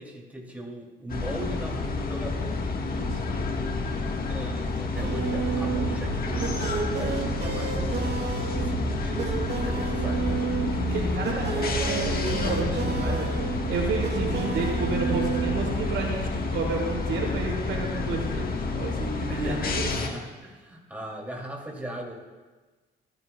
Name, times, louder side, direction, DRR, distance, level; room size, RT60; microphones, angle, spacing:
voice 1, 0.0-2.6 4.2-7.9 8.6-10.3 19.3-22.1, right 1 dB, 10° right, -3 dB, 2.6 m, -38 dB
sound 1, 1.1-20.1, left 3 dB, 50° left, 1.4 m, -30 dB
voice 2, 2.9-3.4 10.7-19.9, right 3 dB, 75° right, -3 dB, 4.2 m, -31 dB
sound 2, 5.0-15.7, right 5 dB, 55° right, 1.9 m, -30 dB
29.0 x 11.0 x 2.3 m, 1.3 s
cardioid pair, 90°, 20 cm